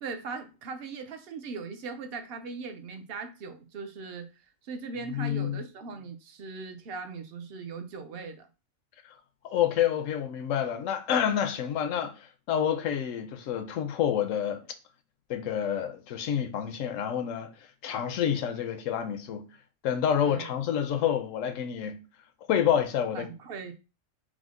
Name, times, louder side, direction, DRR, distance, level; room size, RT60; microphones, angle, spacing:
voice 1, 0.0-4.3 4.6-8.5 20.2-20.5 23.1-23.7, right 4 dB, 60° right, 0.7 m, -39 dB
voice 2, 5.1-5.6 9.4-14.6 15.3-17.5 17.8-19.5 19.8-22.0 22.5-23.3, left 9 dB, 75° left, 1.0 m, -28 dB
4.9 x 2.1 x 3.6 m
omnidirectional pair, 1.4 m